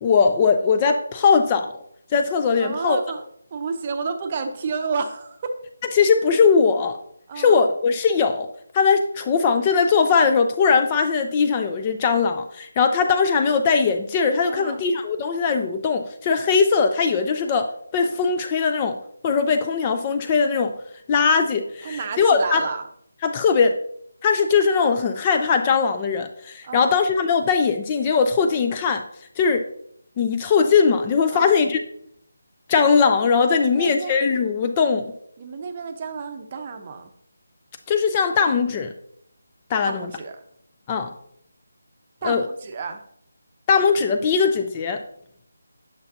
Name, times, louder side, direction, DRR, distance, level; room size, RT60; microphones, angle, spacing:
voice 1, 0.0-1.7 2.1-3.0 6.0-7.0 7.4-8.5 8.7-19.0 19.2-20.7 21.1-22.6 23.2-23.8 24.2-29.0 29.4-29.6 30.2-31.8 32.7-35.1 37.9-38.9 39.7-40.1 40.9-41.1 42.2-42.4 43.7-45.0, left 5 dB, 20° left, 7 dB, 0.4 m, -20 dB
voice 2, 2.6-3.2 3.5-5.5 7.3-7.6 14.5-14.8 21.8-22.9 26.6-27.0 31.3-31.5 33.6-34.2 35.4-37.1 39.8-40.4 42.2-43.0, right 5 dB, 30° right, 6 dB, 0.7 m, -30 dB
8.9 x 6.6 x 2.7 m, 0.68 s
figure-of-eight pair, 155°, 0 cm